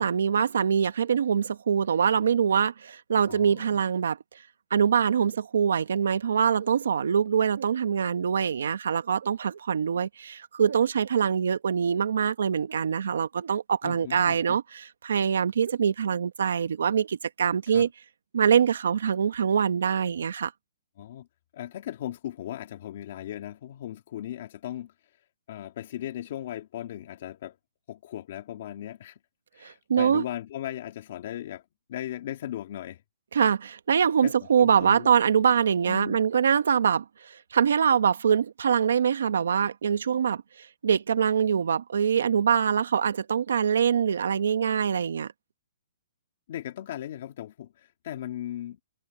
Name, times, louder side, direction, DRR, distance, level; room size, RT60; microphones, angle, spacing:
voice 1, 0.0-4.2 4.7-17.9 18.3-20.5 29.6-30.2 33.3-45.3, right 7 dB, 75° right, 1.2 m, -24 dB
voice 2, 3.3-3.8 13.8-14.6 17.7-17.9 21.0-21.3 21.5-24.9 25.5-27.6 27.9-29.2 29.5-33.0 34.2-35.1 35.8-36.2 46.5-48.8, left 12 dB, 40° left, 2.0 m, -37 dB
hypercardioid pair, 175°, 0 cm